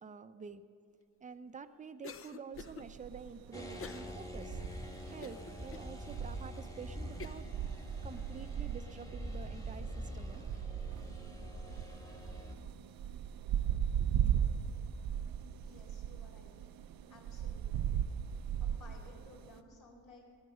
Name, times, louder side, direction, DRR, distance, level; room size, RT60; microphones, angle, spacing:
voice 1, 0.0-0.6 1.2-4.6 5.1-7.5 8.0-10.4 14.0-14.1, right 5 dB, 20° right, 10 dB, 0.6 m, -48 dB
Cough, 2.0-2.8 3.8-4.1 4.6-4.7 5.2-5.9 6.5-6.6 7.2-7.5, left 5 dB, 40° left, 0.6 m, -47 dB
sound 1, 2.6-19.6, right 9 dB, 75° right, 0.6 m, -38 dB
sound 2, 3.5-12.6, equal, 10° left, 1.3 m, -45 dB
voice 2, 15.6-16.6 17.1-18.0 18.6-20.3, left 2 dB, 60° left, -1 dB, 4.3 m, -58 dB
19.5 x 9.7 x 5.6 m, 2.6 s
cardioid pair, 125°, 34 cm